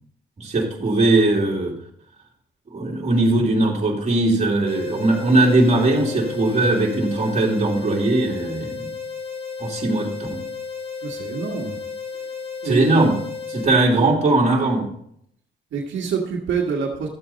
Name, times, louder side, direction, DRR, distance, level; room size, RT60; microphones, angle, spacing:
voice 1, 0.4-1.7 2.7-8.9 9.6-10.4 12.6-13.2 13.5-14.9, right 2 dB, 35° right, -1 dB, 2.7 m, -19 dB
sound 1, 4.7-13.7, left 5 dB, 30° left, 3.5 m, -33 dB
voice 2, 11.0-11.8 12.6-12.9 15.7-17.1, right 6 dB, 70° right, -1 dB, 1.9 m, -26 dB
12.5 x 7.7 x 4.1 m, 0.70 s
cardioid pair, 90°, 20 cm